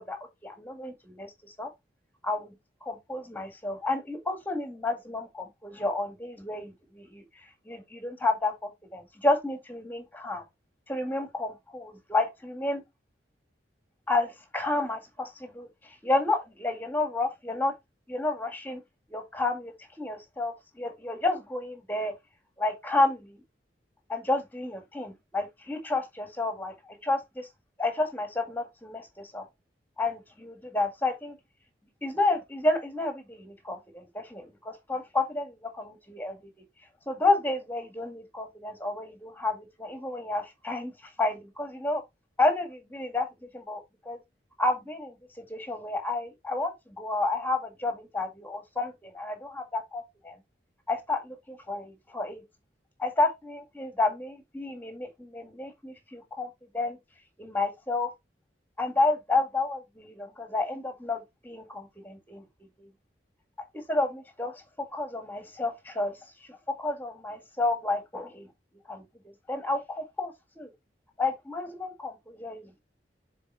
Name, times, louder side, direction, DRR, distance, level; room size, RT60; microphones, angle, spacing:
voice 1, 0.0-1.3 1.6-1.7 2.2-2.5 2.8-7.2 7.7-10.4 10.9-12.8 14.1-15.7 16.0-17.7 18.1-18.8 19.1-19.7 20.0-22.1 22.6-23.3 24.1-27.5 27.8-29.4 30.0-31.4 32.0-36.4 37.1-40.9 41.2-42.0 42.4-43.3 43.5-44.2 44.6-45.2 45.5-50.4 50.9-52.4 53.0-56.5 56.7-57.0 57.4-58.1 58.8-62.4 62.8-62.9 63.7-66.1 66.5-68.5 68.9-69.0 69.5-70.7 71.2-72.8, left 2 dB, 10° left, 1.8 m, -30 dB
6.9 x 4.3 x 3.3 m
head